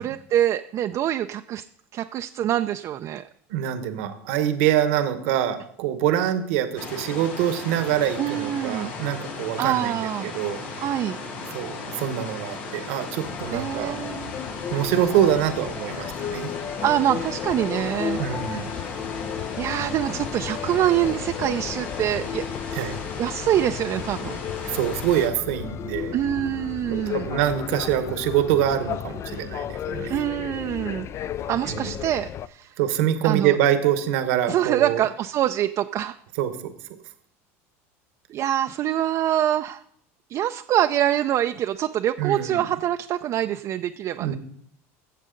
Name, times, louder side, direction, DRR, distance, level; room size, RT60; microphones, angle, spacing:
voice 1, 0.0-1.6 1.9-3.2 8.2-8.9 9.6-10.3 10.8-11.2 13.5-14.3 16.8-18.2 18.5-18.6 19.2-24.4 26.1-27.3 30.1-31.1 31.5-32.8 33.2-33.6 34.5-36.2 38.3-39.8 40.3-44.4, right 11 dB, 45° right, 7 dB, 0.4 m, -25 dB
voice 2, 3.5-10.6 11.5-14.0 14.7-16.5 18.2-18.7 22.7-23.0 24.6-26.2 26.9-30.1 31.7-31.9 32.8-35.0 36.4-36.7 42.2-42.6 44.2-44.4, right 11 dB, 75° right, 9 dB, 1.1 m, -25 dB
sound 1, 6.8-25.3, left 3 dB, 75° left, 4.9 m, -36 dB
sound 2, 13.2-32.5, left 9 dB, 40° left, 0.4 m, -34 dB
14.5 x 7.6 x 3.8 m, 0.70 s
supercardioid pair, 100°, 7 cm